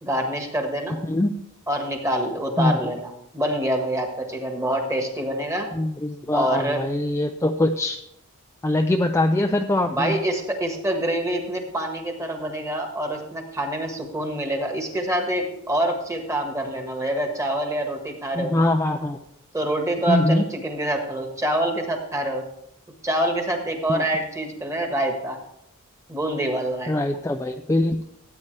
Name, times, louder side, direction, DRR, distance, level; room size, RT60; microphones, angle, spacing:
voice 1, 0.0-1.0 1.7-5.7 6.3-6.8 9.9-18.7 19.5-22.4 23.0-25.4 26.1-27.0, right 1 dB, 15° right, 3 dB, 1.5 m, -26 dB
voice 2, 5.7-8.0 8.6-10.1 18.3-19.2 20.1-20.4 23.9-24.0 26.9-28.0, left 1 dB, 10° left, 4 dB, 0.4 m, -22 dB
14.0 x 8.6 x 3.3 m, 0.77 s
head